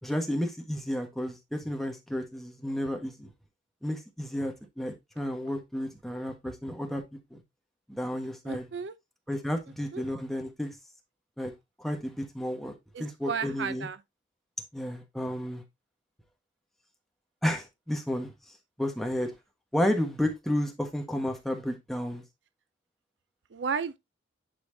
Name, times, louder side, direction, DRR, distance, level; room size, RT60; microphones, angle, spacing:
voice 1, 0.0-3.3 3.8-7.0 7.3-7.4 7.9-8.7 9.3-10.7 11.4-11.5 11.8-12.7 13.0-13.9 14.7-15.6 17.4-18.3 18.8-19.3 19.7-22.2, left 1 dB, ahead, 1.3 m, -32 dB
voice 2, 8.5-8.9 9.9-10.0 12.9-14.0 23.5-24.0, right 6 dB, 65° right, 0.5 m, -33 dB
10.5 x 4.4 x 2.6 m
head